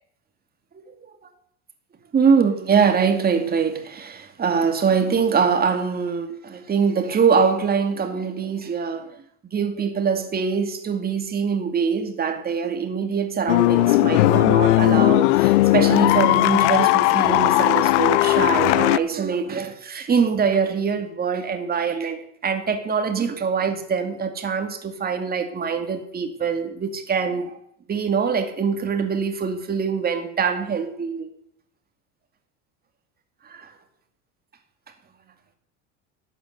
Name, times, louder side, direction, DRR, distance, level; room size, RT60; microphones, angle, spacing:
voice 1, 2.1-9.2 9.5-27.6 27.9-31.3 33.4-33.7, right 6 dB, 25° right, 2.4 m, -23 dB
sound 1, 13.5-19.0, left 18 dB, 90° left, 0.6 m, -17 dB
12.5 x 9.1 x 8.0 m
supercardioid pair, 125°, 35 cm